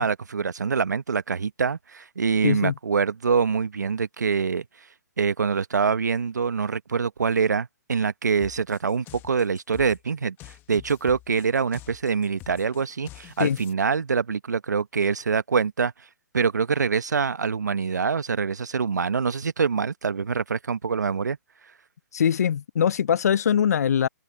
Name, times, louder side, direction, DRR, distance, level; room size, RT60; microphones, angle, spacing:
voice 1, 0.0-4.6 5.2-15.9 16.3-21.4, right 5 dB, 75° right, 1.1 m, -25 dB
voice 2, 2.4-2.7 13.4-13.6 22.1-24.1, left 8 dB, 65° left, 0.5 m, -22 dB
sound 1, 8.4-13.7, left 16 dB, 20° left, 1.3 m, -46 dB
figure-of-eight pair, 130°, 9 cm